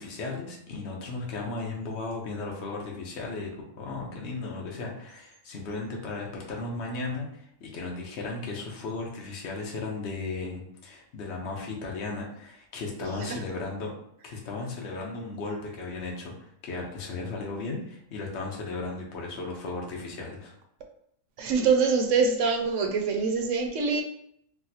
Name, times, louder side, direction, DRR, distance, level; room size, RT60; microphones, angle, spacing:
voice 1, 0.0-7.3 7.6-13.9 14.2-20.5, left 3 dB, 60° left, -1 dB, 1.0 m, -35 dB
voice 2, 13.0-13.4 21.4-24.0, right 5 dB, 70° right, 3 dB, 0.8 m, -25 dB
4.1 x 2.0 x 2.7 m, 0.73 s
omnidirectional pair, 1.4 m